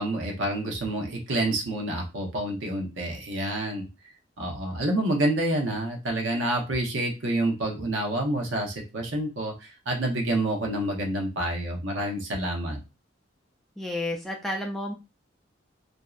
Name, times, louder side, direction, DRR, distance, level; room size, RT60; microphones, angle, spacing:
voice 1, 0.0-3.9 4.4-12.8, right 1 dB, 80° right, 1 dB, 0.8 m, -28 dB
voice 2, 13.8-14.9, left 1 dB, ahead, 0 dB, 0.3 m, -31 dB
2.6 x 2.0 x 2.3 m, 0.27 s
head